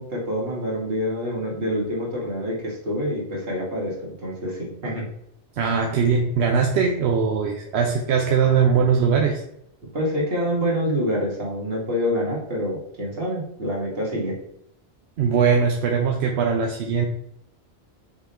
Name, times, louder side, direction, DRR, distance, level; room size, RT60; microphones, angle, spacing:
voice 1, 0.0-5.0 9.9-14.4, equal, 70° right, -4 dB, 2.2 m, -26 dB
voice 2, 5.6-9.4 15.2-17.1, right 6 dB, 90° right, 1 dB, 0.9 m, -20 dB
6.0 x 3.6 x 4.3 m, 0.75 s
omnidirectional pair, 1.1 m